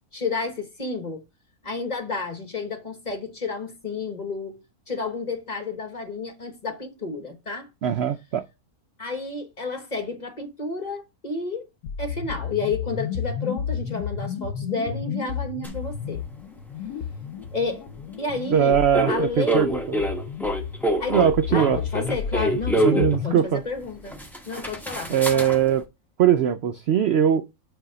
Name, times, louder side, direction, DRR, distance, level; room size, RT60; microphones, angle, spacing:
voice 1, 0.1-1.2 1.6-7.7 9.0-11.7 12.0-16.2 17.5-17.9 18.2-18.8 19.1-19.8 21.0-21.2 21.5-24.2 24.5-25.5, left 3 dB, 35° left, 1.0 m, -31 dB
voice 2, 7.8-8.4 18.5-19.8 21.1-21.8 22.8-23.6 25.1-25.9 26.2-27.4, right 9 dB, 70° right, 0.6 m, -21 dB
sound 1, 11.8-23.4, left 7 dB, 80° left, 1.1 m, -32 dB
sound 2, 15.6-15.7 18.9-23.2 23.8-23.9 24.1-25.6, right 1 dB, ahead, 0.8 m, -25 dB
7.9 x 2.7 x 4.9 m
omnidirectional pair, 1.6 m